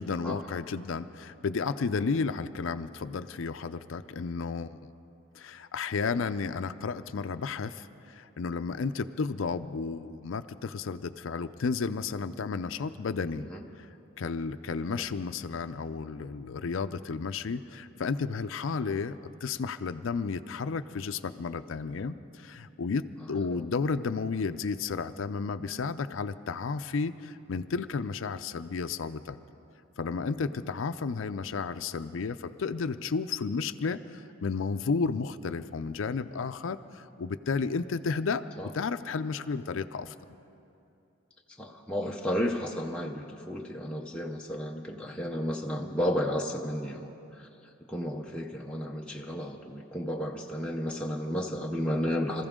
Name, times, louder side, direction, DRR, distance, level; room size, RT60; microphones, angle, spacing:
voice 1, 0.0-4.8 5.4-13.5 13.8-13.9 14.2-29.4 30.0-38.4 38.7-40.1, left 4 dB, 70° left, 10 dB, 0.5 m, -32 dB
voice 2, 13.3-13.7 14.9-15.1 18.9-19.0 23.5-23.6 30.4-30.5 38.6-38.7 41.5-52.5, equal, 5° left, -1 dB, 0.6 m, -33 dB
26.5 x 14.5 x 3.7 m, 2.7 s
head